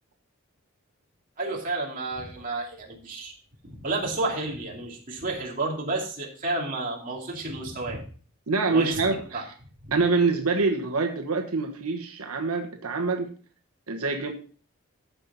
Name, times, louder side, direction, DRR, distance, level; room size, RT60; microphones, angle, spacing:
voice 1, 1.4-3.4 3.6-8.0 8.7-9.4 9.8-9.9, right 2 dB, 40° right, 2.7 m, -31 dB
voice 2, 8.5-9.5 9.9-13.3 13.9-14.3, right 3 dB, 90° right, 1.3 m, -25 dB
14.5 x 5.9 x 4.1 m
head